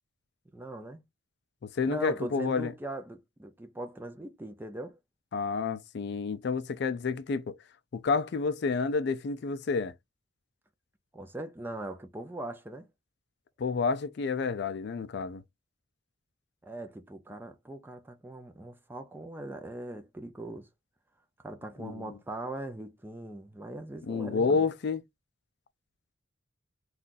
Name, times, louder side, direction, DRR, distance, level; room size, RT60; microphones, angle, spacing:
voice 1, 0.5-1.0 1.9-5.0 11.1-12.9 16.6-20.7 21.4-24.6, right 1 dB, 10° right, 0.5 m, -40 dB
voice 2, 1.7-2.7 5.3-7.4 7.9-9.9 13.6-15.4 21.8-22.1 24.1-25.0, left 4 dB, 55° left, 0.4 m, -29 dB
2.6 x 2.3 x 3.8 m
head